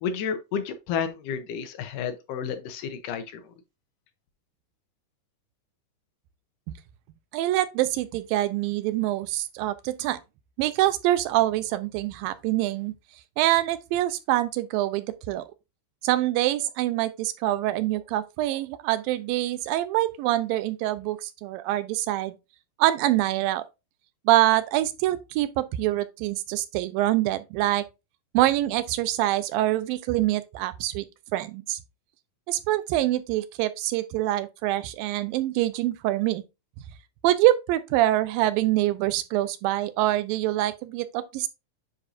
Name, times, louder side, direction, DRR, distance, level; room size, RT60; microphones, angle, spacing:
voice 1, 0.0-3.5, left 7 dB, 75° left, 2.2 m, -31 dB
voice 2, 7.3-10.2 10.6-12.9 13.4-15.4 16.0-22.3 22.8-23.6 24.3-27.9 28.3-31.1 31.3-31.8 32.5-36.4 37.2-41.5, right 15 dB, 85° right, 2.4 m, -25 dB
9.7 x 4.2 x 2.5 m
omnidirectional pair, 4.0 m